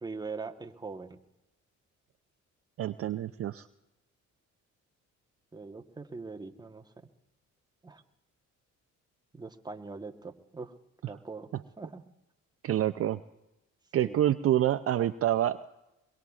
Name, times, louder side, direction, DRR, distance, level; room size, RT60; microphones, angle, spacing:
voice 1, 0.0-1.2 5.5-6.9 7.8-8.0 9.3-10.7 11.1-11.5 11.8-12.0 14.0-14.2, right 4 dB, 15° right, 4 dB, 1.1 m, -41 dB
voice 2, 2.8-3.7 12.6-13.2 13.9-15.7, right 12 dB, 50° right, 9 dB, 0.5 m, -27 dB
22.5 x 22.5 x 2.4 m, 0.95 s
cardioid pair, 90°, 30 cm